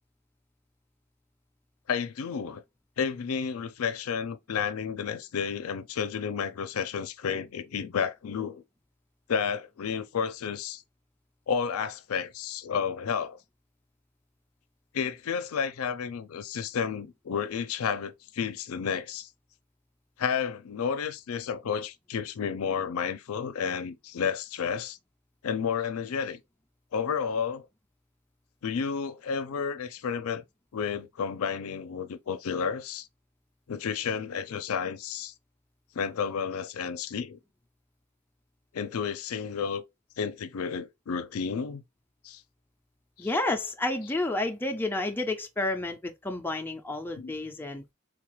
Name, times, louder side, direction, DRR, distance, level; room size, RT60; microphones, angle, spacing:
voice 1, 1.9-2.6 3.0-8.6 9.3-10.8 11.5-13.4 14.9-19.3 20.2-25.0 25.4-26.4 26.9-27.6 28.6-30.4 30.7-33.1 33.7-35.3 35.9-37.4 38.7-39.8 40.2-41.8 42.2-42.4 43.2-43.3 47.2-47.3, left 6 dB, 80° left, 0.4 m, -31 dB
voice 2, 43.2-47.8, left 2 dB, 10° left, 0.4 m, -30 dB
3.6 x 2.3 x 3.0 m
head